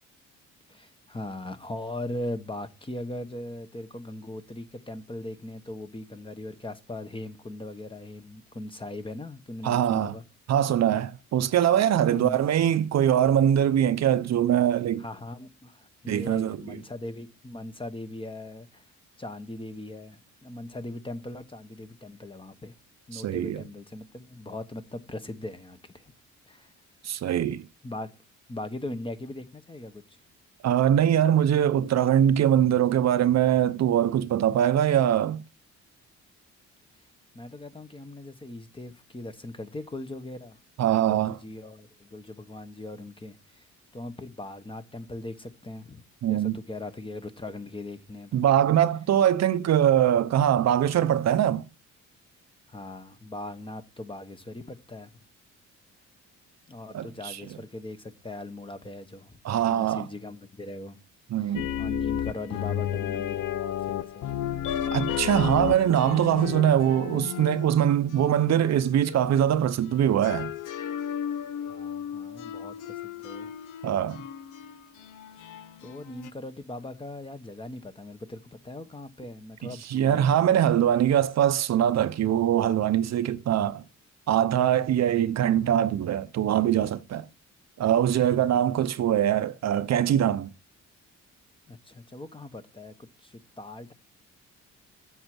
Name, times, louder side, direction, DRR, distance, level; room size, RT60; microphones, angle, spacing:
voice 1, 0.7-10.2 12.1-12.4 15.0-18.9 19.2-22.7 23.1-26.1 26.5-26.7 27.8-28.1 28.5-30.2 37.3-40.6 41.0-43.7 43.9-48.4 52.7-55.1 56.7-59.4 59.7-61.0 61.4-64.4 71.5-73.5 75.4-75.5 75.8-80.7 88.5-88.6 91.7-93.9, left 1 dB, 15° left, 1.2 m, -40 dB
voice 2, 9.6-10.1 10.5-15.0 16.1-16.8 23.1-23.6 27.0-27.7 30.6-35.4 40.8-41.4 46.2-46.6 48.3-51.6 56.9-57.4 59.4-60.0 61.3-61.7 64.9-70.5 73.8-74.2 79.9-83.8 84.3-87.3 87.8-90.5, right 10 dB, 60° right, 0.7 m, -23 dB
sound 1, 61.5-69.4 69.8-76.3, left 10 dB, 90° left, 0.7 m, -33 dB
8.0 x 7.6 x 6.1 m
cardioid pair, 90°, 30 cm